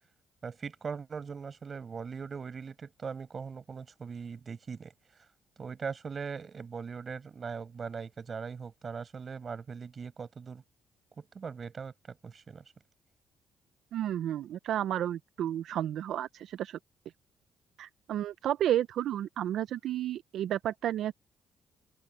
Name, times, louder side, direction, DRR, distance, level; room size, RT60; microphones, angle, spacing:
voice 1, 0.4-4.9 5.6-10.6 11.2-12.6, right 5 dB, 40° right, 5.9 m, -40 dB
voice 2, 13.9-16.8 17.8-21.1, right 11 dB, 75° right, 0.5 m, -32 dB
cardioid pair, 90°, 0 cm